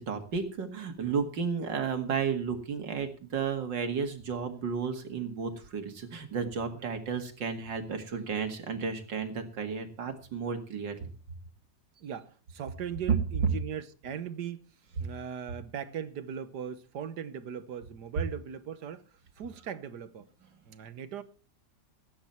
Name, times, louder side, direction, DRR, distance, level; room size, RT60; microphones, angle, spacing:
voice 1, 0.0-11.1, right 6 dB, 85° right, 2.7 m, -33 dB
voice 2, 12.0-14.7 15.0-19.1 19.4-20.3 20.7-21.2, right 8 dB, 70° right, 1.6 m, -39 dB
19.0 x 9.6 x 4.5 m
omnidirectional pair, 1.9 m